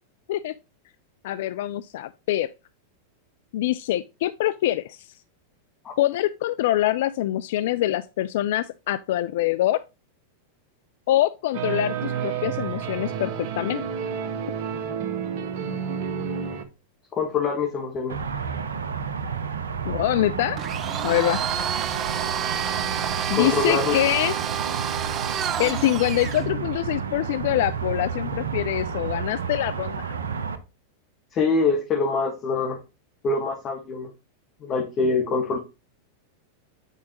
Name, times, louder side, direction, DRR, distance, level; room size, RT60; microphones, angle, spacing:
voice 1, 1.2-2.5 3.5-5.1 6.0-9.8 11.1-13.8 19.9-20.6 21.0-21.4 23.3-24.3 25.6-30.1, left 14 dB, 60° left, 0.3 m, -24 dB
sound 1, 11.5-16.6, right 7 dB, 55° right, 1.1 m, -30 dB
voice 2, 17.2-18.2 23.3-23.9 31.3-32.8 33.2-34.1 34.6-35.6, left 4 dB, 35° left, 1.4 m, -24 dB
sound 2, 18.1-30.6, right 6 dB, 80° right, 0.8 m, -31 dB
Domestic sounds home sounds, 20.6-26.5, right 9 dB, 35° right, 0.5 m, -29 dB
8.2 x 4.7 x 2.8 m
hypercardioid pair, 95°, 0 cm